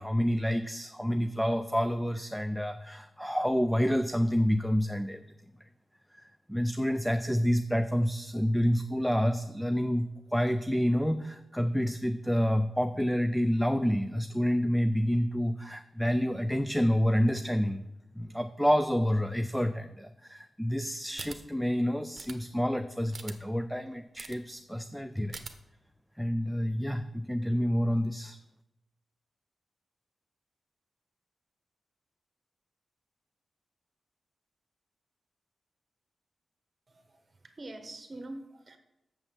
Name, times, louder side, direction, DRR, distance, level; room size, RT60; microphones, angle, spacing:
voice 1, 0.0-5.2 6.1-17.9 18.2-25.4 26.2-28.4, equal, ahead, 9 dB, 0.4 m, -28 dB
sound 1, 21.1-21.4 22.2-22.3 23.1-23.3 24.2-24.4 25.3-25.5, right 4 dB, 55° right, 0.9 m, -42 dB
voice 2, 36.9-38.8, right 2 dB, 35° right, 6 dB, 1.2 m, -45 dB
6.9 x 5.6 x 7.1 m, 0.90 s
cardioid pair, 85°, 0 cm